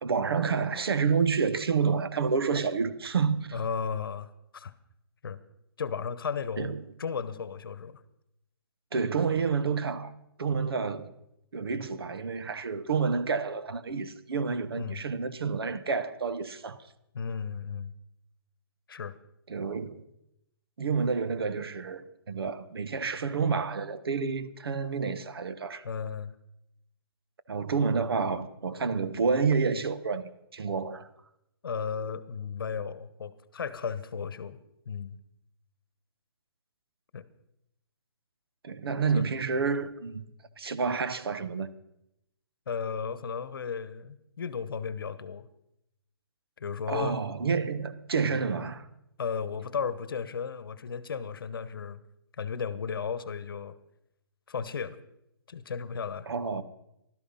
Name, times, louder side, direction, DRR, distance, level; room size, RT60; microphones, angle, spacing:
voice 1, 0.0-3.6 6.6-6.9 8.9-10.1 10.4-11.1 11.5-16.8 19.5-20.1 20.8-25.8 27.5-31.1 38.6-40.3 40.6-41.7 46.9-48.9 56.3-56.6, right 5 dB, 70° right, 1.3 m, -29 dB
voice 2, 3.5-4.7 5.2-5.4 5.8-6.7 7.0-8.0 14.8-15.0 17.1-17.9 18.9-19.2 25.8-26.3 31.6-34.6 34.9-35.2 37.1-37.3 39.1-39.2 42.7-45.5 46.6-47.2 49.2-52.0 52.4-53.8 54.5-55.0 55.5-56.3, left 6 dB, 60° left, 1.1 m, -34 dB
15.5 x 12.5 x 5.6 m
hypercardioid pair, 170°, 13 cm